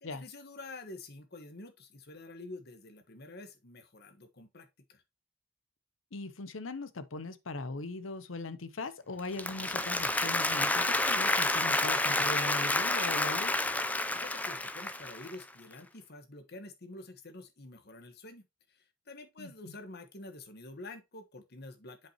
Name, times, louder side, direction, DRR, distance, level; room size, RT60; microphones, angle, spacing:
voice 1, 0.0-5.0 14.1-22.1, left 2 dB, 55° left, 1.3 m, -48 dB
voice 2, 6.1-13.6 19.4-19.7, left 2 dB, 75° left, 0.8 m, -40 dB
Applause, 9.2-15.4, left 2 dB, 10° left, 0.5 m, -29 dB
7.5 x 5.5 x 2.9 m
head